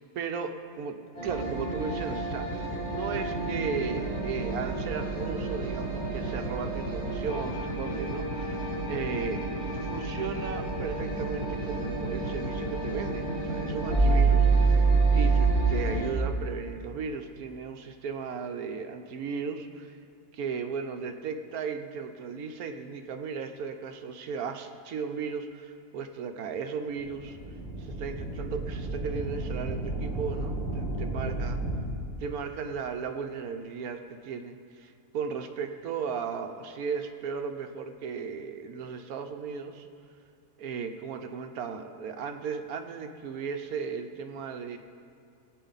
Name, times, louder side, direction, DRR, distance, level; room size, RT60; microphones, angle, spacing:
voice 1, 0.2-8.6 8.9-9.4 9.8-20.0 20.3-27.4 27.8-31.6 32.2-39.9 40.6-44.8, right 6 dB, 70° right, 6 dB, 1.1 m, -36 dB
sound 1, 1.1-16.1, right 3 dB, 40° left, 3.5 m, -28 dB
sound 2, 27.1-31.8, right 2 dB, ahead, 3.1 m, -33 dB
18.5 x 8.5 x 4.0 m, 2.4 s
omnidirectional pair, 1.7 m